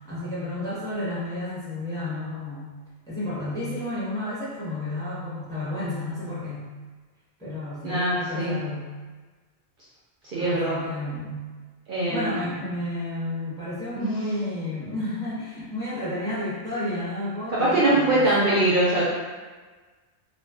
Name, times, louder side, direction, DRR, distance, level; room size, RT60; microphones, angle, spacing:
voice 1, 0.0-2.7 3.1-6.7 7.4-8.9 10.3-11.5 12.1-18.7, left 1 dB, 5° left, -9 dB, 0.8 m, -31 dB
voice 2, 7.8-8.6 10.3-10.7 11.9-12.4 14.0-14.1 17.5-19.0, right 2 dB, 55° right, -7 dB, 0.6 m, -22 dB
2.5 x 2.3 x 3.3 m, 1.4 s
omnidirectional pair, 1.1 m